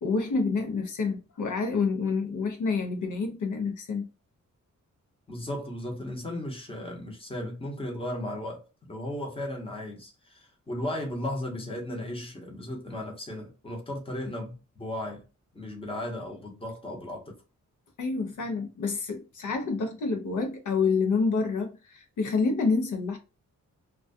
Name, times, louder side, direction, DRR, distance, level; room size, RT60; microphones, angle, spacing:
voice 1, 0.0-4.1 18.0-23.2, left 4 dB, 70° left, 0.6 m, -28 dB
voice 2, 5.3-15.2 15.5-17.4, left 1 dB, 15° left, 0.9 m, -35 dB
2.3 x 2.2 x 2.5 m
wide cardioid pair, 115°, 32 cm